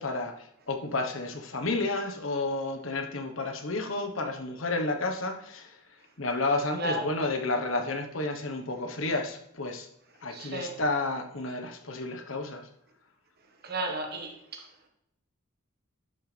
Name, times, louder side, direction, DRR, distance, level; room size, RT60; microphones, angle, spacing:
voice 1, 0.0-5.8 6.2-9.9 10.2-12.6, left 2 dB, 65° left, 5 dB, 1.3 m, -31 dB
voice 2, 10.3-10.8 13.6-14.6, right 2 dB, 50° right, 3 dB, 1.5 m, -33 dB
11.5 x 6.6 x 3.4 m, 0.79 s
head